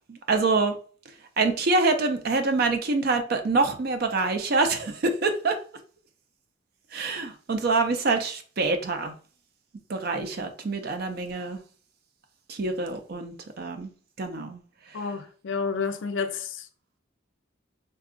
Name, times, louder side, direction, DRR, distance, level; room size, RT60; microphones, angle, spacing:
voice 1, 0.1-0.8 1.4-5.6 6.9-9.1 9.9-11.6 12.5-13.9 14.2-14.6 14.9-15.0, right 3 dB, 50° right, 0.4 m, -26 dB
voice 2, 14.9-16.7, left 5 dB, 70° left, 0.4 m, -30 dB
3.6 x 2.3 x 2.4 m
head